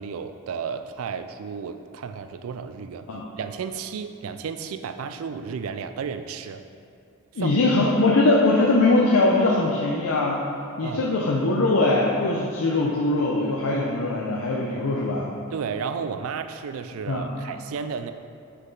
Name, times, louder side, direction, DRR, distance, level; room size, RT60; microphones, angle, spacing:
voice 1, 0.0-3.1 3.4-6.6 7.3-7.6 10.8-11.1 15.5-18.1, right 6 dB, 75° right, 9 dB, 0.4 m, -33 dB
voice 2, 7.4-10.4 10.8-15.3 17.1-17.4, left 2 dB, 80° left, -3 dB, 0.6 m, -21 dB
6.3 x 4.7 x 3.8 m, 2.5 s
head